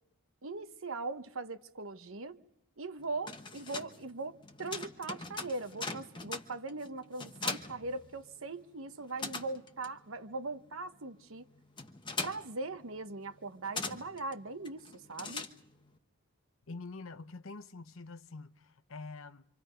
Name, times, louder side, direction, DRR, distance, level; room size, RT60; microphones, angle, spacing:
voice 1, 0.4-2.4 2.8-11.5 12.2-15.5, right 3 dB, 65° right, 1.1 m, -40 dB
sound 1, 3.0-8.6 8.9-16.0, left 4 dB, 20° left, 1.2 m, -42 dB
voice 2, 16.7-19.5, left 3 dB, 65° left, 0.9 m, -46 dB
28.0 x 26.0 x 5.2 m
head